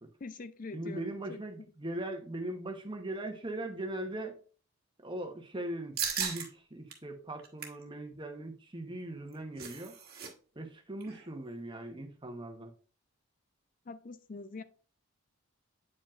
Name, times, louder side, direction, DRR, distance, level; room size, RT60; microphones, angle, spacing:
voice 1, 0.2-1.4 13.9-14.6, left 3 dB, 35° left, 0.4 m, -44 dB
voice 2, 0.7-4.4 5.0-10.0 10.6-12.7, right 1 dB, 20° right, 0.9 m, -40 dB
sound 1, 6.0-6.5 6.9-7.0 7.4-7.8 9.1-10.3 10.6-10.7 11.0-11.3, right 7 dB, 45° right, 1.3 m, -36 dB
8.5 x 5.2 x 2.4 m
head